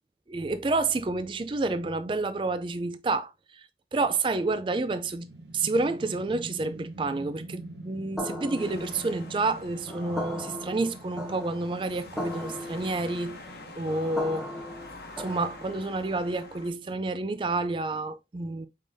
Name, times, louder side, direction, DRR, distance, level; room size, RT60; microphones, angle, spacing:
voice 1, 0.3-13.4 13.8-14.5 15.2-18.7, right 3 dB, 30° right, 0.4 m, -29 dB
sound 1, 4.5-16.7, right 1 dB, 80° right, 1.0 m, -46 dB
sound 2, 8.2-16.0, left 1 dB, ahead, 0.8 m, -38 dB
sound 3, 8.6-16.7, left 2 dB, 65° left, 1.0 m, -47 dB
5.0 x 3.8 x 2.6 m
head